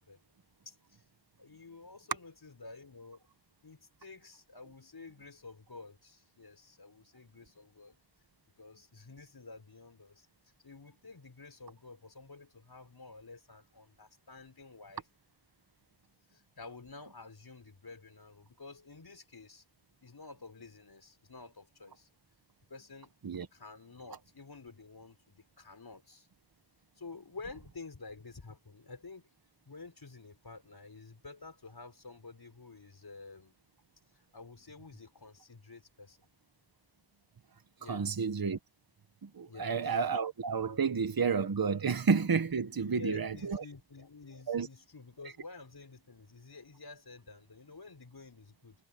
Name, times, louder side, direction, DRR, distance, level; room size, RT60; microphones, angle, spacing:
voice 1, 0.7-1.0 1.4-3.2 3.6-8.0 8.6-10.3 10.6-15.0 16.3-19.6 20.0-22.1 22.7-23.1 23.5-26.3 27.0-29.3 29.7-33.5 34.1-36.2 37.8-38.3 39.5-40.0 42.8-48.8, left 3 dB, 55° left, 5.8 m, -50 dB
voice 2, 37.9-38.6 39.2-43.6 44.5-44.7, right 5 dB, 50° right, 1.2 m, -30 dB
wide cardioid pair, 75°, 45 cm